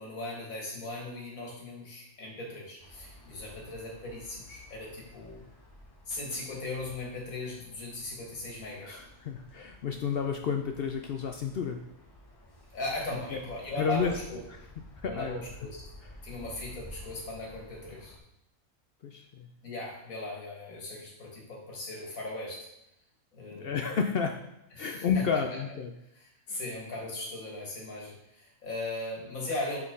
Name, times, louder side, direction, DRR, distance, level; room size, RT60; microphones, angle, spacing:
voice 1, 0.0-5.5 6.1-9.0 12.7-14.4 15.0-15.8 16.2-18.1 19.6-22.6 23.3-23.7 24.8-25.2 26.1-29.8, left 2 dB, 85° left, -2 dB, 2.2 m, -38 dB
sound 1, 2.8-18.2, left 1 dB, 20° left, 1.0 m, -52 dB
voice 2, 8.8-11.8 13.3-13.4 13.8-14.1 15.0-15.4 19.0-19.5 23.5-24.4 24.8-25.9 26.5-26.6, left 6 dB, 65° left, 4 dB, 0.6 m, -31 dB
6.0 x 6.0 x 3.7 m, 0.83 s
omnidirectional pair, 1.4 m